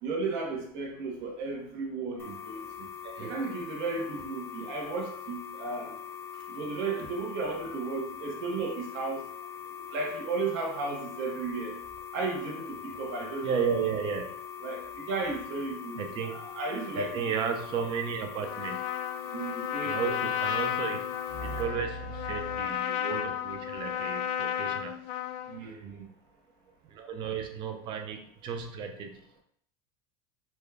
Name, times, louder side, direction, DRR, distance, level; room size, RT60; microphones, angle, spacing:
voice 1, 0.0-2.9 3.2-5.9 6.5-9.2 9.9-11.8 12.1-13.8 14.6-16.0 16.3-17.2 19.3-20.1 21.3-21.7 25.5-26.1, right 3 dB, 60° right, 0 dB, 1.1 m, -34 dB
sound 1, 2.2-21.6, left 8 dB, 20° left, 0.6 m, -42 dB
voice 2, 3.0-3.5 13.4-14.3 16.0-16.5 17.0-18.8 19.8-21.0 21.4-24.9 26.9-29.2, right 6 dB, 40° right, 5 dB, 0.6 m, -33 dB
Trumpet, 18.4-25.6, left 10 dB, 60° left, 0.4 m, -33 dB
4.2 x 2.4 x 3.3 m, 0.65 s
supercardioid pair, 135°, 13 cm